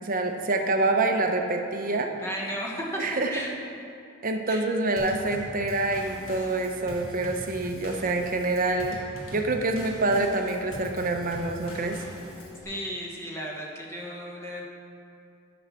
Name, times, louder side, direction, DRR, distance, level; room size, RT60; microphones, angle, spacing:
voice 1, 0.0-2.1 3.0-3.3 4.2-9.0 9.3-12.0, right 2 dB, 40° right, 4 dB, 0.8 m, -26 dB
voice 2, 2.2-3.0 3.3-3.5 4.5-4.6 12.6-14.7, equal, 15° left, -3 dB, 1.3 m, -34 dB
Drum kit / Snare drum / Bass drum, 5.0-12.6, left 1 dB, 70° left, 1.6 m, -42 dB
7.7 x 7.1 x 6.3 m, 2.5 s
head